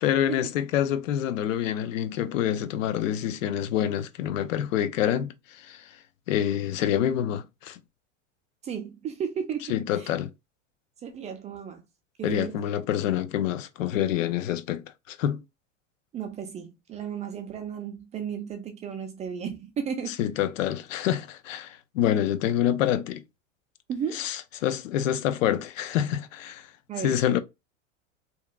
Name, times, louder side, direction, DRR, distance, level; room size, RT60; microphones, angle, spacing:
voice 1, 0.0-5.9 6.3-7.8 9.7-10.3 12.2-15.4 20.2-23.2 24.1-26.7 27.0-27.4, left 10 dB, 75° left, 0.5 m, -27 dB
voice 2, 8.6-10.1 11.0-11.8 12.2-12.7 16.1-20.2 23.9-24.3 26.9-27.2, right 7 dB, 20° right, 0.3 m, -34 dB
2.7 x 2.4 x 2.2 m
hypercardioid pair, 105°, 38 cm